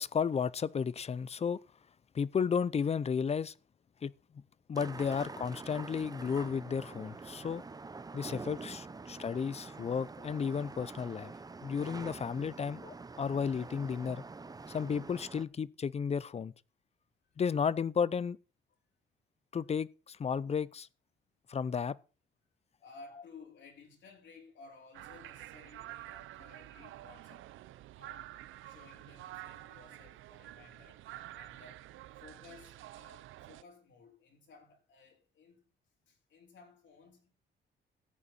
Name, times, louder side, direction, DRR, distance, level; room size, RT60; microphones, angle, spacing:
voice 1, 0.0-1.6 2.1-3.5 4.0-4.1 4.7-7.6 8.1-11.3 11.6-14.2 14.7-16.5 17.4-18.4 19.5-20.9 21.5-22.0, left 6 dB, 30° left, 0.5 m, -33 dB
sound 1, 4.8-15.5, right 3 dB, 20° right, 0.7 m, -46 dB
voice 2, 22.8-27.5 27.9-28.3 28.6-31.0 31.3-31.9 32.1-35.7 36.1-37.3, left 4 dB, 65° left, 4.2 m, -57 dB
sound 2, 24.9-33.6, right 15 dB, 85° right, 0.6 m, -49 dB
14.0 x 8.4 x 4.2 m
cardioid pair, 90°, 20 cm